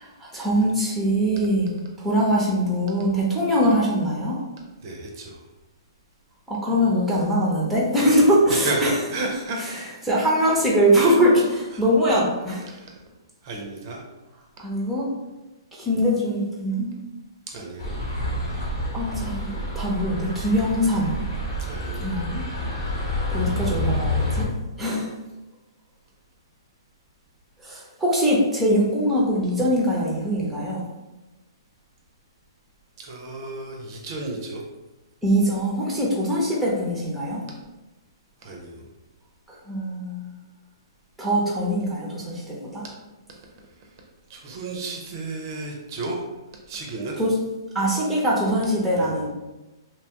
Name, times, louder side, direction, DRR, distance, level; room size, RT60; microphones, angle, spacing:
voice 1, 0.2-1.7 2.0-4.3 6.5-8.9 10.0-12.6 14.6-15.1 15.8-16.9 18.9-21.2 22.0-22.4 23.3-24.5 24.8-25.1 27.6-30.8 35.2-37.4 39.7-40.3 41.2-42.8 47.2-47.3 47.7-49.3, equal, ahead, -4 dB, 0.6 m, -22 dB
voice 2, 4.8-5.4 8.0-8.2 8.5-9.6 11.7-11.8 12.7-13.0 13.4-14.0 17.5-18.0 21.6-22.1 33.0-34.6 38.4-38.9 43.8-43.9 44.3-46.2 46.7-47.2 49.0-49.3, right 2 dB, 45° right, 0 dB, 0.5 m, -32 dB
sound 1, 17.8-24.4, left 1 dB, 70° left, 1.1 m, -28 dB
2.8 x 2.2 x 2.8 m, 1.1 s
hypercardioid pair, 140°, 2 cm